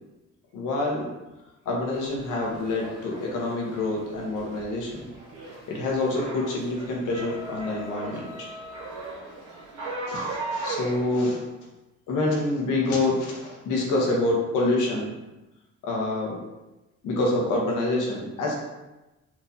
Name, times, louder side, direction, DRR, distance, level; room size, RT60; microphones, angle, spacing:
voice 1, 0.5-1.0 1.6-5.1 5.7-8.5 10.1-11.4 12.1-15.1 15.8-16.3 17.0-18.5, left 2 dB, 90° left, -2 dB, 1.0 m, -26 dB
sound 1, 1.9-11.2, right 2 dB, 90° right, 1.2 m, -38 dB
4.4 x 2.5 x 2.7 m, 1.0 s
cardioid pair, 90°, 30 cm